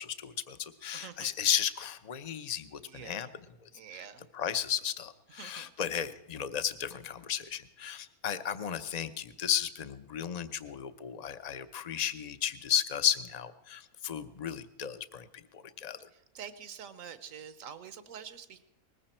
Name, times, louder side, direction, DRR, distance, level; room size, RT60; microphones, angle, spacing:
voice 1, 0.0-3.3 3.9-4.1 4.3-15.3 15.5-16.0, left 9 dB, 40° left, 12 dB, 0.6 m, -34 dB
voice 2, 0.9-1.3 2.9-3.3 3.7-4.2 5.4-5.7 16.3-18.6, right 8 dB, 65° right, 13 dB, 1.3 m, -46 dB
20.0 x 15.0 x 4.4 m, 0.96 s
omnidirectional pair, 1.5 m